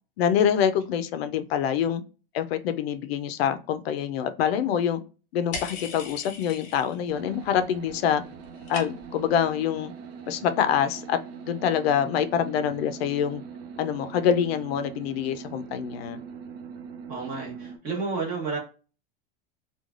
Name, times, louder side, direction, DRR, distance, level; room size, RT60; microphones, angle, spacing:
voice 1, 0.2-2.0 2.3-5.0 5.3-8.2 8.7-9.9 10.3-11.2 11.5-13.4 13.8-16.2, left 8 dB, 85° left, 11 dB, 0.5 m, -25 dB
sound 1, 5.5-7.1 7.4-7.9 8.2-9.3, left 4 dB, 25° left, 0.5 m, -38 dB
sound 2, 7.1-17.8, right 6 dB, 75° right, 0.7 m, -42 dB
voice 2, 17.1-18.6, right 4 dB, 30° right, -1 dB, 1.0 m, -31 dB
3.1 x 2.3 x 2.4 m, 0.34 s
supercardioid pair, 170°, 30 cm